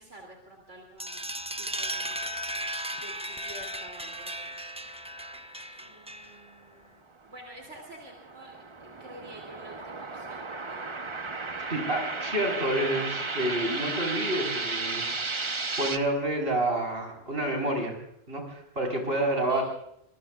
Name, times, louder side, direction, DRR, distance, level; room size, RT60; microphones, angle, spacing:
voice 1, 0.0-1.3 1.6-2.2 2.9-4.5 5.8-7.0 7.2-8.6 9.0-10.9 19.2-19.6, right 1 dB, 75° right, 0 dB, 3.3 m, -49 dB
sound 1, 1.0-6.5, right 1 dB, 5° right, 0.5 m, -36 dB
sound 2, 7.6-16.0, right 3 dB, 25° right, 0.8 m, -34 dB
voice 2, 11.7-15.1 15.3-15.5 15.8-18.0 18.3-19.6, right 1 dB, 55° right, 2 dB, 5.0 m, -29 dB
25.5 x 23.0 x 2.4 m, 0.76 s
omnidirectional pair, 1.2 m